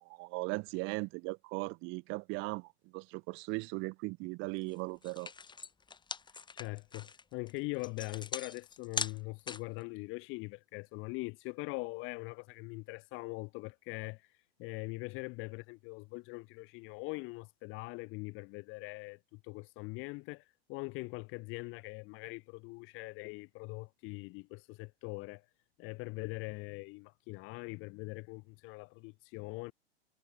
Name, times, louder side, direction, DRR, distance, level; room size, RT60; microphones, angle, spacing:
voice 1, 0.0-5.3, right 28 dB, 40° right, 1.2 m, -38 dB
sound 1, 4.6-4.7 5.0-9.8, left 5 dB, 15° left, 4.6 m, -41 dB
voice 2, 6.5-25.5 25.8-29.7, left 26 dB, 40° left, 2.0 m, -42 dB
hypercardioid pair, 105°, 32 cm